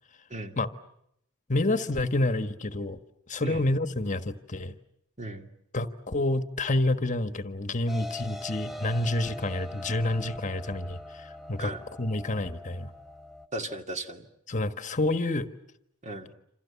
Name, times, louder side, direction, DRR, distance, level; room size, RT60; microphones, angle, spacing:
voice 1, 1.5-3.0 3.3-4.8 5.7-11.7 12.0-12.9 14.5-15.5, left 2 dB, 35° left, 10 dB, 1.4 m, -28 dB
voice 2, 5.2-5.5 11.6-11.8 13.5-14.2 16.0-16.3, right 2 dB, 35° right, 5 dB, 2.5 m, -36 dB
sound 1, 7.9-13.5, left 1 dB, ahead, 1.3 m, -42 dB
28.5 x 27.5 x 7.1 m, 0.77 s
head